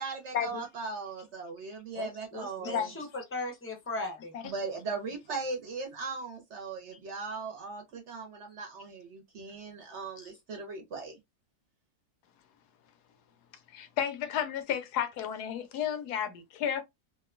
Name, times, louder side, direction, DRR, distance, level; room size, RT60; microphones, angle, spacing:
voice 1, 0.0-2.9 4.4-11.1, right 4 dB, 60° right, 0.8 m, -38 dB
voice 2, 1.9-4.3 10.2-10.3, left 2 dB, 15° left, 0.4 m, -38 dB
voice 3, 13.7-16.8, left 9 dB, 85° left, 1.2 m, -32 dB
2.9 x 2.2 x 2.3 m
omnidirectional pair, 1.7 m